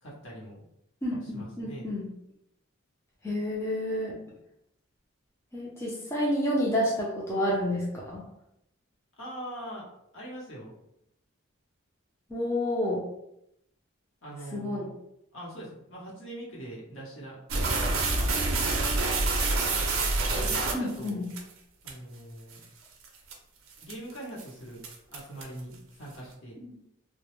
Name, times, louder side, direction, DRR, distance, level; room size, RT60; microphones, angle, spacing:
voice 1, 0.0-0.6 1.2-1.8 9.2-9.9 10.1-10.8 14.2-14.9 15.3-18.3 20.4-21.2 21.8-22.6 23.8-24.8 25.1-26.6, right 1 dB, 65° left, -5 dB, 0.8 m, -42 dB
voice 2, 1.0-2.1 3.2-4.1 5.5-8.3 12.3-13.0 14.5-14.8 20.7-21.3 26.6-26.9, left 1 dB, 10° left, -6 dB, 0.4 m, -29 dB
sound 1, 17.5-21.4 21.9-22.0 22.5-22.6 23.0-23.3 23.8-24.1 24.4-24.5 24.8-25.6, right 3 dB, 70° right, 0.4 m, -27 dB
2.1 x 2.0 x 2.9 m, 0.79 s
head